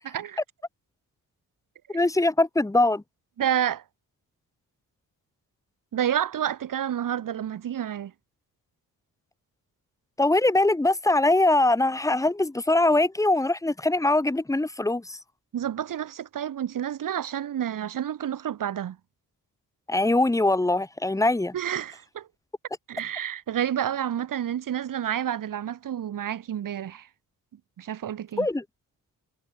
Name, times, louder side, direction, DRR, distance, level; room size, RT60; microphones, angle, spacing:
voice 1, 0.0-0.4 3.4-3.8 5.9-8.1 15.5-19.0 21.5-22.3 22.9-27.1 27.8-28.5, right 10 dB, 65° right, 4.0 m, -29 dB
voice 2, 1.9-3.0 10.2-15.2 19.9-21.5 28.4-28.6, left 2 dB, 10° left, 3.2 m, -22 dB
wide cardioid pair, 175°, 35 cm